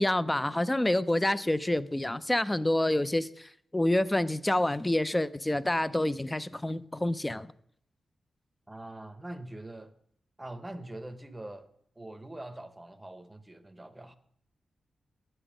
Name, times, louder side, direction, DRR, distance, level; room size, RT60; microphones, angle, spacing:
voice 1, 0.0-7.5, left 1 dB, 10° left, 0.3 m, -28 dB
voice 2, 8.7-9.9 10.4-11.7 12.0-14.2, right 1 dB, 10° right, 0.7 m, -43 dB
8.9 x 7.8 x 5.0 m
wide cardioid pair, 135°, 0 cm